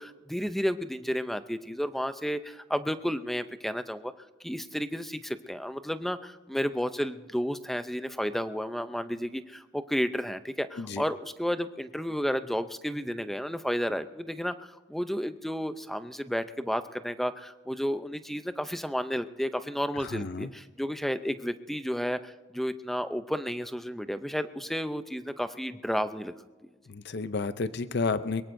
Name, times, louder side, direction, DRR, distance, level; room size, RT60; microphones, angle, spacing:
voice 1, 0.0-4.1 4.4-26.4, equal, ahead, 10 dB, 0.5 m, -32 dB
voice 2, 20.0-20.5 26.9-28.4, left 4 dB, 50° left, 12 dB, 0.5 m, -31 dB
22.5 x 22.0 x 2.6 m, 1.2 s
head